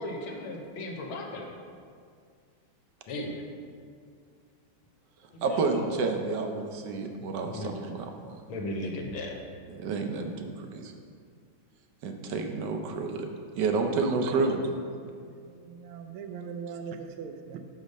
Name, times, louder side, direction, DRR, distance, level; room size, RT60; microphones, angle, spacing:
voice 1, 0.0-1.5 3.1-3.4 5.3-5.8 7.4-7.7 8.5-9.4, left 1 dB, 75° left, 1 dB, 1.6 m, -36 dB
voice 2, 5.4-8.1 9.7-10.9 12.0-13.3 13.6-14.6, right 4 dB, 70° right, 4 dB, 1.1 m, -29 dB
voice 3, 14.0-14.5 15.1-17.7, right 6 dB, 85° right, 6 dB, 1.5 m, -41 dB
6.5 x 5.1 x 5.3 m, 2.2 s
omnidirectional pair, 2.3 m